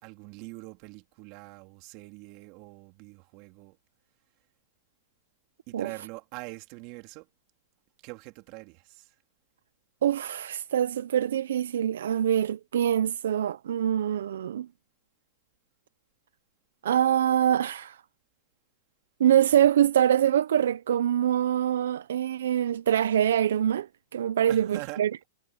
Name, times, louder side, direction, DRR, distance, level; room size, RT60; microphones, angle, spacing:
voice 1, 0.0-3.8 5.7-7.3 8.0-9.0 24.5-25.3, right 25 dB, 45° right, 3.2 m, -43 dB
voice 2, 10.0-14.7 16.8-18.0 19.2-25.2, right 10 dB, 80° right, 0.6 m, -24 dB
hypercardioid pair, 140°, 0 cm